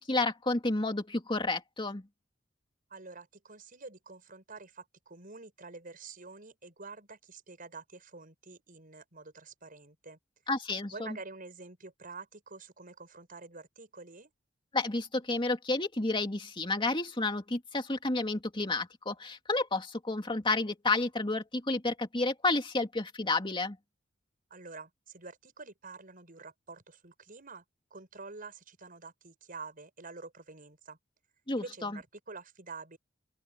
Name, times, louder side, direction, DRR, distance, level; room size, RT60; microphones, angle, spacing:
voice 1, 0.0-2.1 10.5-11.2 14.7-23.8 31.5-32.0, left 2 dB, 25° left, 2.6 m, -31 dB
voice 2, 2.9-10.2 10.9-14.3 24.5-27.6 27.9-31.0 31.6-33.0, right 3 dB, 45° right, 6.3 m, -48 dB
open air
head